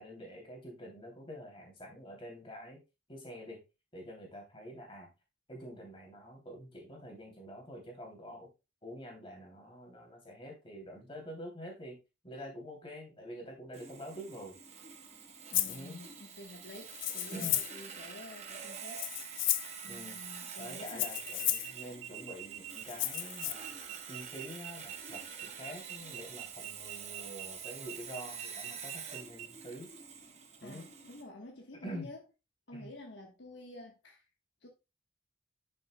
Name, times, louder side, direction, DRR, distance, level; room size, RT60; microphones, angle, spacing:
voice 1, 0.0-2.8 3.1-3.6 3.9-5.1 5.5-8.5 8.8-12.0 12.2-14.6 15.7-16.0 17.3-17.6 19.9-20.2 20.6-23.7 24.1-25.2 25.6-29.9 30.6-30.8 31.8-32.1 32.7-32.9, equal, 25° left, 2.8 m, -46 dB
Sawing, 13.7-31.2, right 6 dB, 35° right, 1.0 m, -47 dB
Rattle (instrument), 15.5-15.8 16.9-17.8 18.9-19.8 20.9-21.7 22.9-23.5, left 14 dB, 85° left, 0.6 m, -33 dB
voice 2, 15.5-19.0 19.8-21.1 30.6-32.2 32.7-34.2 34.6-34.7, left 2 dB, 70° left, 1.3 m, -49 dB
sound 1, 20.9-29.5, right 12 dB, 80° right, 0.5 m, -46 dB
9.6 x 6.5 x 2.2 m
head